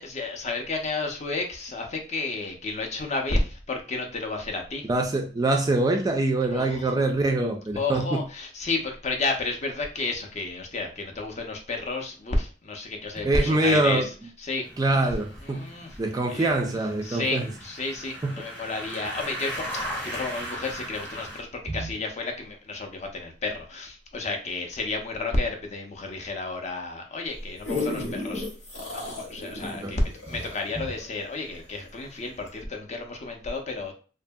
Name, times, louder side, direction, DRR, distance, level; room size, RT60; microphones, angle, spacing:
voice 1, 0.0-4.9 6.5-6.9 7.8-14.1 14.4-15.1 15.4-15.9 16.3-16.5 17.0-28.5 28.9-33.9, left 3 dB, 35° left, 0.5 m, -31 dB
voice 2, 4.9-8.2 13.2-14.1 14.8-15.7 16.0-17.5 18.2-18.3 21.7-21.9 29.8-30.0 30.8-30.9, right 2 dB, 20° right, 0.3 m, -24 dB
sound 1, 14.6-21.4, equal, 10° left, 0.8 m, -38 dB
sound 2, 27.3-31.9 32.5-32.6, left 2 dB, 85° left, 1.2 m, -34 dB
2.6 x 2.6 x 2.2 m
head